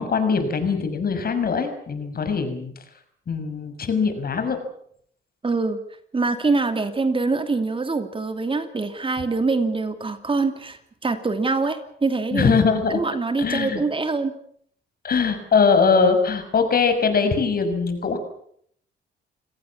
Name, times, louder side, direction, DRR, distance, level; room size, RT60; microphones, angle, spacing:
voice 1, 0.0-2.7 3.3-4.6 12.3-13.0 13.4-13.8 15.0-18.2, left 5 dB, 50° left, 8 dB, 6.3 m, -21 dB
voice 2, 5.4-5.8 6.1-12.5 12.9-14.3, right 3 dB, 25° right, 8 dB, 2.7 m, -24 dB
29.0 x 18.5 x 7.2 m, 0.66 s
cardioid pair, 90°, 20 cm